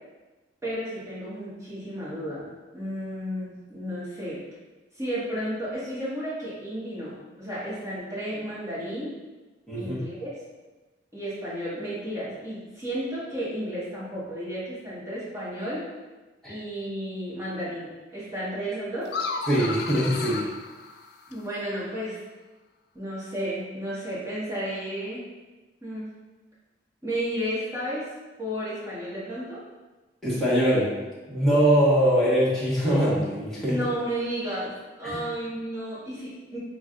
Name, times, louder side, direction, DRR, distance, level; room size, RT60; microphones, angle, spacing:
voice 1, 0.6-2.5 2.7-4.4 5.0-9.1 9.8-10.3 11.1-15.9 16.5-19.1 21.3-22.2 22.9-25.2 25.8-26.1 27.0-28.0 28.4-29.6 33.6-34.7 35.0-36.6, equal, 15° right, -9 dB, 1.3 m, -32 dB
voice 2, 9.7-10.0 16.4-16.5 19.5-20.4 30.2-30.9 31.3-33.8 35.0-35.2, equal, 5° left, -11 dB, 1.3 m, -22 dB
sound 1, 19.0-21.5, left 4 dB, 60° left, 0.3 m, -34 dB
6.0 x 2.4 x 2.5 m, 1.2 s
head